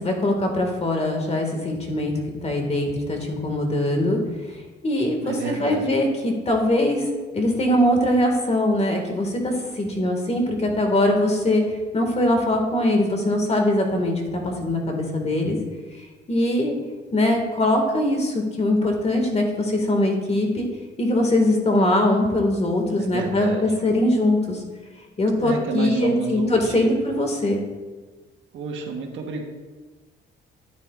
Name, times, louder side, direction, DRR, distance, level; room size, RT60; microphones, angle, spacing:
voice 1, 0.0-2.1 2.4-4.2 4.5-7.1 7.3-15.6 16.0-16.8 17.1-20.7 21.0-24.6 25.2-27.6, left 1 dB, 35° left, 2 dB, 1.9 m, -22 dB
voice 2, 5.2-5.8 23.0-23.7 25.4-27.0 28.5-29.4, right 5 dB, 80° right, 2 dB, 1.3 m, -29 dB
9.8 x 9.7 x 2.5 m, 1.3 s
cardioid pair, 90°, 20 cm